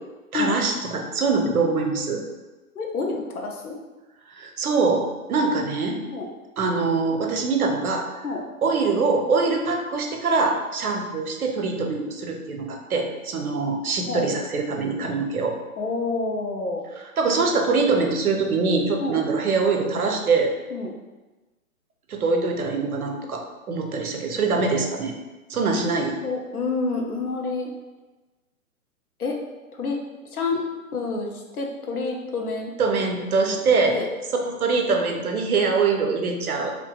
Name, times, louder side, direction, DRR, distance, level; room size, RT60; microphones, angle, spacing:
voice 1, 0.3-2.2 4.3-6.0 6.6-8.2 8.6-15.6 17.2-20.5 22.1-25.1 25.5-26.2 32.8-34.0 34.5-36.7, right 4 dB, 75° right, 3 dB, 0.6 m, -23 dB
voice 2, 2.8-3.8 6.1-6.3 8.2-8.4 14.1-14.3 15.8-16.9 19.0-19.2 20.7-20.9 24.6-24.8 26.2-27.7 29.2-29.4 29.8-30.0 30.3-30.6 30.9-31.3 31.5-32.7 33.9-34.1, left 3 dB, 80° left, 1 dB, 0.6 m, -28 dB
2.6 x 2.3 x 2.2 m, 1.2 s
figure-of-eight pair, 120°, 43 cm